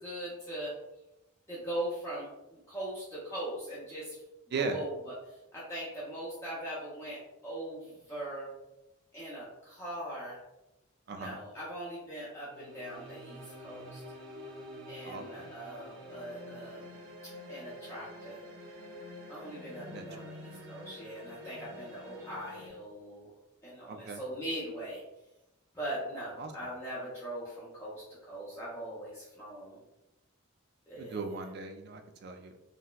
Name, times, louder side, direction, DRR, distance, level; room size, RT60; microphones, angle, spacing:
voice 1, 0.0-0.7 1.5-4.2 4.5-5.0 5.5-8.5 9.1-10.4 11.2-14.0 14.9-16.8 17.5-18.4 19.3-23.3 23.6-25.0 25.7-29.8 30.9-31.2, right 1 dB, 15° left, -8 dB, 0.5 m, -40 dB
voice 2, 4.5-4.8 11.1-11.4 15.0-15.5 19.9-20.0 23.9-24.2 26.4-26.5 30.9-32.6, right 4 dB, 50° right, 6 dB, 0.3 m, -38 dB
sound 1, 12.4-22.7, left 1 dB, 65° right, 0.8 m, -47 dB
4.0 x 2.1 x 2.2 m, 0.95 s
head